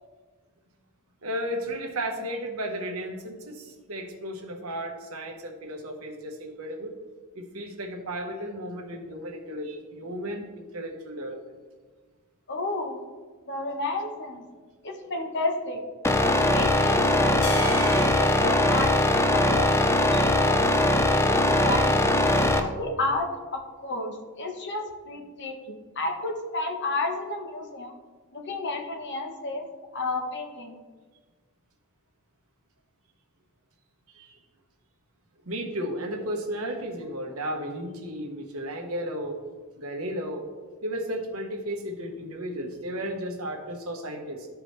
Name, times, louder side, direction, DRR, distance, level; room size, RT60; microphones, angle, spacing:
voice 1, 1.2-6.9 7.3-11.4 22.3-22.5 34.1-34.4 35.4-39.4 39.8-40.4 40.8-44.5, equal, 70° right, 2 dB, 1.2 m, -34 dB
voice 2, 12.5-13.0 13.5-14.4 14.8-15.8 16.2-20.7 21.1-22.1 22.6-27.9 28.3-29.7 29.9-30.8, left 2 dB, 55° left, 4 dB, 1.1 m, -32 dB
sound 1, 16.0-22.6, left 1 dB, 10° left, 0.4 m, -21 dB
sound 2, 17.4-21.8, left 1 dB, 85° left, 1.2 m, -39 dB
13.0 x 4.9 x 3.3 m, 1.4 s
head